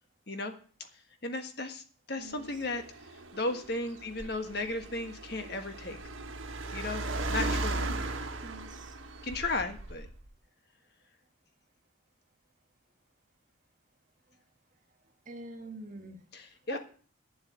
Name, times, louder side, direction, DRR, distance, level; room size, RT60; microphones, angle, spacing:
voice 1, 1.2-2.8 3.3-6.0 6.7-7.9 9.2-10.1 16.3-16.8, left 2 dB, 55° left, 1.5 m, -35 dB
voice 2, 2.2-2.5 8.4-9.0 15.3-16.2 16.7-16.8, right 2 dB, 40° right, 1.8 m, -44 dB
Car, 2.3-10.3, right 2 dB, 85° right, 1.5 m, -37 dB
10.0 x 7.6 x 8.2 m
head